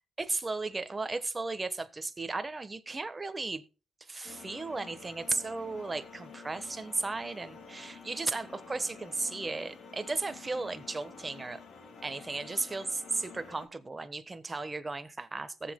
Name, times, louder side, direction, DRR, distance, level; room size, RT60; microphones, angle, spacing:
voice 1, 0.2-3.6 4.0-11.6 12.0-15.7, right 3 dB, 25° right, 1.2 m, -35 dB
sound 1, 4.2-13.7, left 5 dB, 55° left, 1.8 m, -50 dB
18.5 x 7.4 x 2.2 m
cardioid pair, 90°, 0 cm